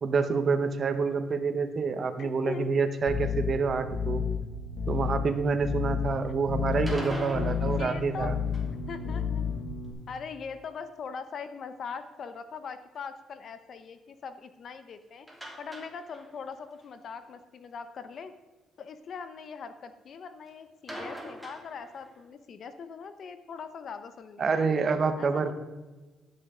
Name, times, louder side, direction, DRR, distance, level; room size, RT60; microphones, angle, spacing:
voice 1, 0.0-4.2 4.9-8.4 24.4-25.5, right 4 dB, 50° right, 9 dB, 1.0 m, -27 dB
voice 2, 2.2-2.7 6.2-6.3 7.6-8.4 8.9-9.4 10.1-15.3 15.6-18.3 18.8-24.7 25.2-25.5, left 5 dB, 60° left, 10 dB, 0.7 m, -41 dB
sound 1, 3.1-9.9, left 6 dB, 80° left, 1.6 m, -31 dB
sound 2, 6.7-8.9 15.3-16.5 16.8-16.9 17.3-17.4 20.9-22.2, right 1 dB, 5° right, 2.9 m, -41 dB
12.0 x 6.4 x 5.0 m, 1.2 s
cardioid pair, 90°, 0 cm